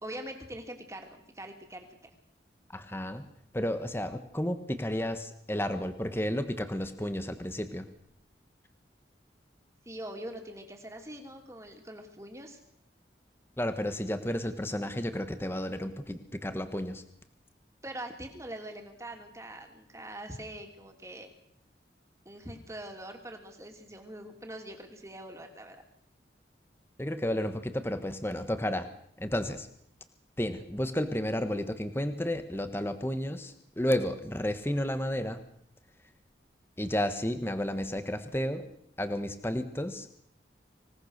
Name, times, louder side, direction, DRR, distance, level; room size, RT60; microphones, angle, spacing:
voice 1, 0.0-2.1 9.8-12.6 17.8-21.3 22.2-25.8, right 1 dB, 15° right, 4 dB, 3.0 m, -43 dB
voice 2, 2.7-3.2 3.5-7.9 13.6-17.0 27.0-28.9 29.2-29.7 30.4-35.4 36.8-38.7 39.0-40.1, left 1 dB, 15° left, 9 dB, 1.3 m, -32 dB
26.0 x 18.0 x 6.7 m, 0.69 s
head